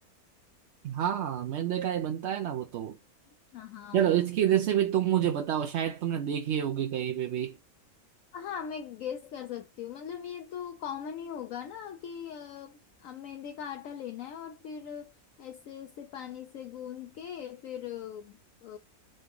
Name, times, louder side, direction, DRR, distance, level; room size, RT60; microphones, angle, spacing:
voice 1, 0.8-3.0 3.9-7.6, right 10 dB, 65° right, 0.7 m, -28 dB
voice 2, 3.5-4.2 8.3-15.1 15.4-18.8, left 8 dB, 70° left, 0.9 m, -40 dB
3.9 x 3.5 x 3.7 m
omnidirectional pair, 1.6 m